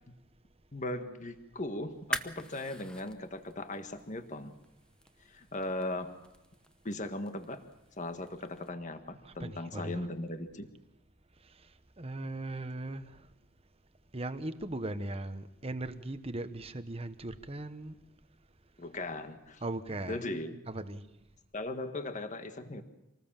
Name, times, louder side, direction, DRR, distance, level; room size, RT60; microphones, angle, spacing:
voice 1, 0.7-4.6 5.3-6.1 6.8-7.6 8.0-10.7 18.8-19.6 19.9-20.6 21.5-22.8, left 2 dB, 35° left, 1.6 m, -38 dB
sound 1, 1.9-8.7, left 1 dB, 5° left, 0.9 m, -45 dB
voice 2, 9.2-10.1 11.4-11.7 12.0-13.3 14.1-18.0 19.6-20.3 20.7-21.0, right 2 dB, 25° right, 1.2 m, -39 dB
26.5 x 19.5 x 7.4 m
head